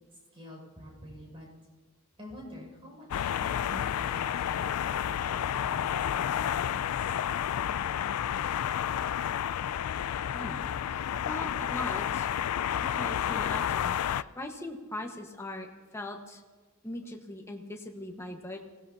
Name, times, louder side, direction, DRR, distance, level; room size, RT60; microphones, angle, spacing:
voice 1, 0.3-1.5 2.2-7.1, equal, 25° right, -2 dB, 6.0 m, -47 dB
sound 1, 3.1-14.2, left 9 dB, 90° left, 0.3 m, -30 dB
voice 2, 10.3-12.3 12.7-15.7 15.9-16.4 16.8-18.6, left 1 dB, 10° left, 1 dB, 1.4 m, -40 dB
26.0 x 17.0 x 2.8 m, 1.4 s
head